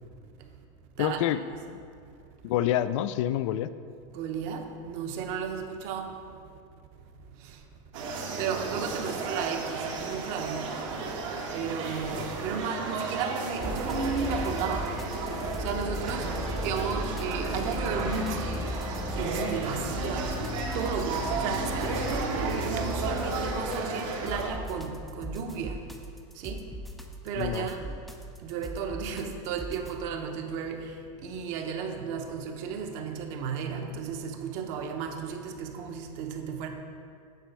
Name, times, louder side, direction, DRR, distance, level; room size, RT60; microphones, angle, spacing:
voice 1, 1.0-1.8 2.4-3.7 12.1-12.3 27.4-27.7, left 11 dB, 70° left, 13 dB, 0.4 m, -28 dB
voice 2, 4.1-6.1 7.4-7.6 8.4-10.7 11.5-14.9 15.6-16.3 16.6-18.5 19.1-20.4 20.7-25.8 26.4-26.6 27.2-28.0 28.4-31.0 31.2-36.7, right 6 dB, 45° right, 4 dB, 0.9 m, -34 dB
sound 1, 7.9-24.5, right 4 dB, 75° right, 1.5 m, -33 dB
sound 2, 13.6-30.0, left 1 dB, ahead, 0.4 m, -36 dB
9.2 x 4.3 x 6.3 m, 2.3 s
supercardioid pair, 155°, 16 cm